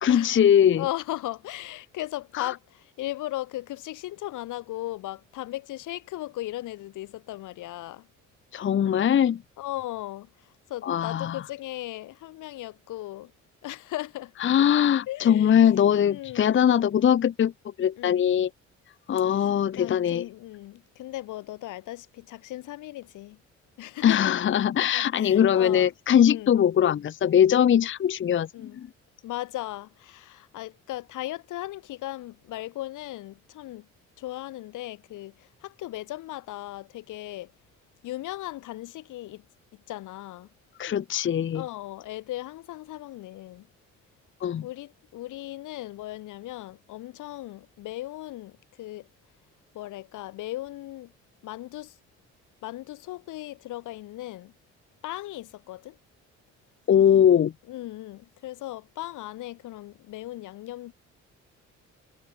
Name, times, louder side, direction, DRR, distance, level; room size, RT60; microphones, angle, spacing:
voice 1, 0.0-0.8 2.3-2.5 8.5-9.4 10.8-11.4 14.4-17.5 17.8-18.5 19.1-20.3 24.0-28.9 40.8-41.6 44.4-44.7 56.9-57.5, left 9 dB, 40° left, 0.7 m, -21 dB
voice 2, 0.7-8.1 9.6-10.3 10.7-13.3 13.6-14.3 15.1-15.6 16.1-16.6 18.0-18.2 19.8-23.4 23.8-24.3 24.9-25.9 26.3-26.5 28.5-28.8 29.2-33.9 34.2-37.5 38.0-39.4 39.9-40.5 41.5-43.7 44.6-49.1 49.7-51.1 51.4-51.9 52.6-54.5 55.0-56.0 57.7-60.9, left 16 dB, 90° left, 3.2 m, -37 dB
cardioid pair, 90°, 30 cm